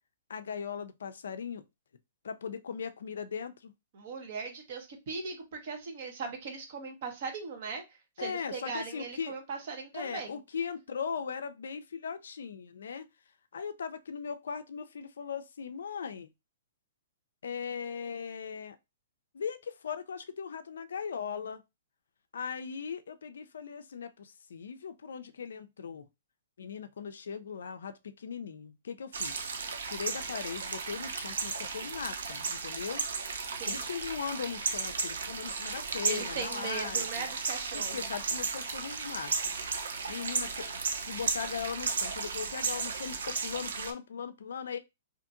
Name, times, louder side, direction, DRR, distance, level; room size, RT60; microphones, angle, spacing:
voice 1, 0.3-1.6 2.2-3.7 8.2-9.3 9.9-13.1 13.5-16.3 17.4-18.8 19.3-21.6 22.3-26.1 26.6-29.5 29.8-33.1 33.7-37.3 37.7-39.3 40.1-40.7 41.0-44.8, left 6 dB, 75° left, 0.3 m, -39 dB
voice 2, 3.9-7.8 8.2-10.4 33.5-33.8 36.0-38.1, right 4 dB, 55° right, 1.0 m, -39 dB
sound 1, 29.1-43.9, right 5 dB, 75° right, 0.5 m, -34 dB
2.7 x 2.5 x 2.5 m
hypercardioid pair, 130°, 0 cm